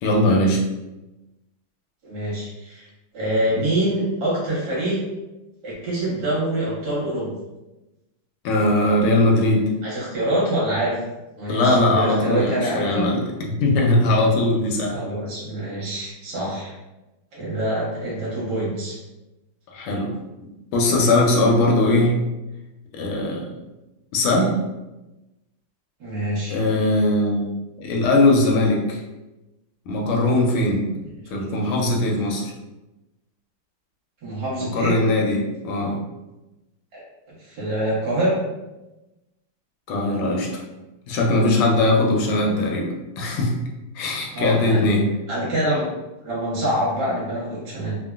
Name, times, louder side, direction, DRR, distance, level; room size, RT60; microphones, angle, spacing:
voice 1, 0.0-0.6 8.4-9.7 11.5-13.2 13.6-15.0 19.7-20.1 20.7-22.2 22.9-23.5 24.1-24.5 26.5-27.5 27.8-29.0 29.9-30.8 31.3-32.4 34.7-36.0 39.9-40.6 41.1-43.5 43.9-45.0, left 2 dB, 75° left, 0 dB, 1.2 m, -20 dB
voice 2, 2.0-2.8 3.1-5.0 5.6-7.3 9.8-11.0 11.4-13.1 14.8-16.7 17.3-19.0 26.0-26.6 34.2-35.0 36.9-37.0 37.4-38.4 42.4-42.6 44.3-45.0 45.3-45.9 46.2-47.9, right 1 dB, 55° right, -6 dB, 1.5 m, -25 dB
3.6 x 2.1 x 2.3 m, 1.0 s
omnidirectional pair, 2.4 m